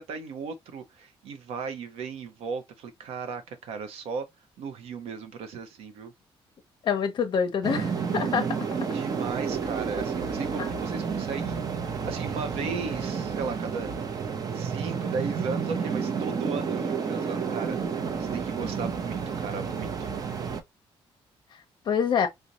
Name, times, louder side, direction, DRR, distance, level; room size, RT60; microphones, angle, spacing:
voice 1, 0.0-4.3 4.6-6.1 8.9-13.9 14.5-17.8 18.3-20.1, right 5 dB, 85° right, 0.7 m, -36 dB
voice 2, 6.8-8.5 10.6-10.7 21.8-22.3, left 7 dB, 50° left, 0.6 m, -26 dB
sound 1, 7.6-20.6, right 6 dB, 40° right, 0.6 m, -30 dB
3.9 x 2.1 x 2.9 m
cardioid pair, 135°, 10 cm